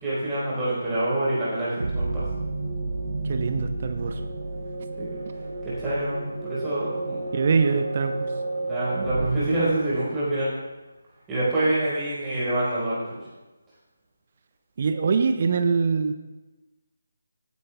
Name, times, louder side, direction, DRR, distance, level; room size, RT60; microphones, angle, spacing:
voice 1, 0.0-2.2 5.0-5.1 5.6-7.3 8.6-10.5 11.3-13.2, right 1 dB, 10° right, -10 dB, 4.2 m, -26 dB
sound 1, 1.8-10.4, right 2 dB, 60° right, 3.6 m, -32 dB
voice 2, 3.3-4.2 7.3-8.3 14.8-16.1, right 5 dB, 40° right, 7 dB, 0.8 m, -23 dB
17.5 x 9.5 x 2.3 m, 1.1 s
figure-of-eight pair, 155°, 0 cm